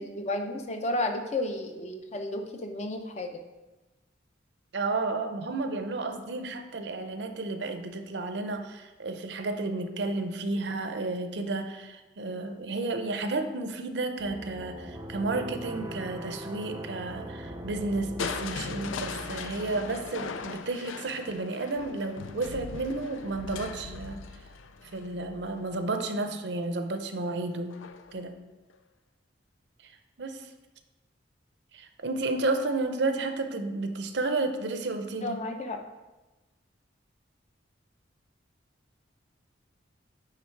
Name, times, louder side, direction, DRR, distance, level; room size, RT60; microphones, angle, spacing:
voice 1, 0.0-3.4 35.2-35.8, left 1 dB, 35° left, 4 dB, 0.6 m, -32 dB
voice 2, 4.7-24.2 24.9-27.8 28.1-28.3 29.8-29.9 30.2-30.5 31.7-35.4, right 2 dB, 65° right, 7 dB, 0.6 m, -32 dB
sound 1, 14.2-20.1, right 1 dB, 20° right, 0.5 m, -41 dB
Crushing, 18.2-26.1 27.7-28.2 28.7-28.8, left 5 dB, 90° left, 0.4 m, -39 dB
9.0 x 3.5 x 4.5 m, 1.1 s
head